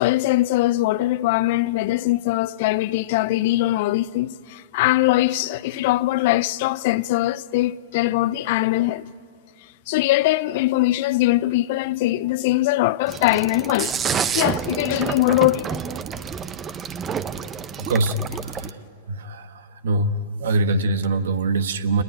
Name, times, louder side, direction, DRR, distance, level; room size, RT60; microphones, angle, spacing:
voice 1, 0.0-9.0 9.9-14.0 14.3-15.8, left 17 dB, 55° left, 0.6 m, -21 dB
Mad Scientist lab loopable, 13.1-18.7, right 7 dB, 25° right, 0.9 m, -28 dB
voice 2, 17.8-18.2 18.5-18.6 19.1-19.5 19.8-22.0, right 2 dB, 70° right, 1.3 m, -22 dB
28.0 x 20.0 x 9.3 m
hypercardioid pair, 105°, 0 cm